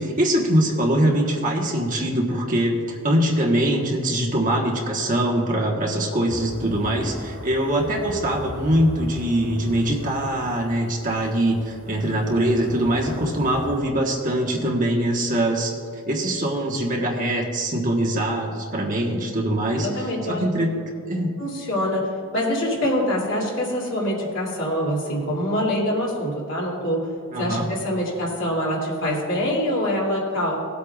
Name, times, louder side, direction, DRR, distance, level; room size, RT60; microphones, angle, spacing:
voice 1, 0.0-20.8 21.1-21.4 27.3-27.7, right 1 dB, 40° right, -1 dB, 1.3 m, -23 dB
sound 1, 6.3-13.8, equal, 75° right, 2.0 m, -39 dB
voice 2, 19.8-20.4 21.4-22.1 22.3-27.1 27.4-30.6, equal, 60° left, -4 dB, 2.8 m, -24 dB
18.0 x 8.4 x 2.4 m, 2.3 s
head